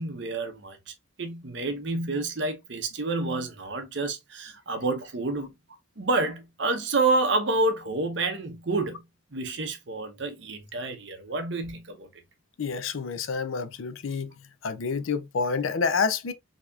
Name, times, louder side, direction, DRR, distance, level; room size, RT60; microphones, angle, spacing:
voice 1, 0.0-5.5 6.0-9.0 9.3-12.1, right 3 dB, 60° right, 0.8 m, -29 dB
voice 2, 12.6-14.3 14.6-16.3, left 5 dB, 80° left, 0.5 m, -28 dB
4.0 x 2.8 x 2.4 m
head